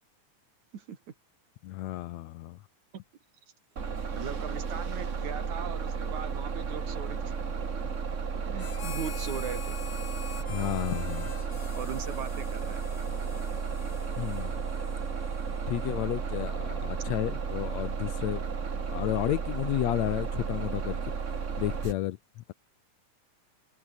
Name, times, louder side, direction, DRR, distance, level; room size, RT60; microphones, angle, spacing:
voice 1, 1.6-2.6 10.5-11.3 14.2-14.5 15.7-18.5 18.9-21.0 21.6-22.2, left 15 dB, 75° left, 1.8 m, -32 dB
Bus, 3.8-21.9, right 5 dB, 35° right, 1.3 m, -33 dB
voice 2, 4.0-7.3 8.4-9.7 11.8-12.8, right 7 dB, 70° right, 3.9 m, -39 dB
Harmonica, 8.6-16.3, left 8 dB, 50° left, 2.6 m, -46 dB
omnidirectional pair, 3.5 m